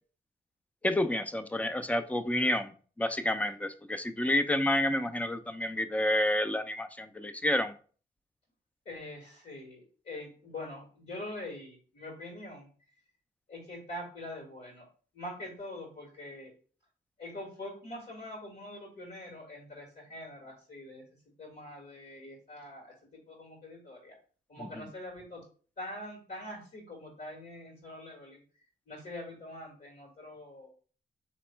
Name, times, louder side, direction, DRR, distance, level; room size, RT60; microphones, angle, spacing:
voice 1, 0.8-2.7 3.0-7.7 24.6-24.9, left 1 dB, 10° left, 9 dB, 0.5 m, -29 dB
voice 2, 8.9-12.7 13.5-14.9 15.1-16.5 17.2-21.0 21.4-24.1 24.5-25.4 25.8-28.4 28.9-30.7, left 1 dB, 60° left, -3 dB, 1.9 m, -44 dB
3.5 x 3.1 x 4.4 m, 0.40 s
cardioid pair, 60°, 18 cm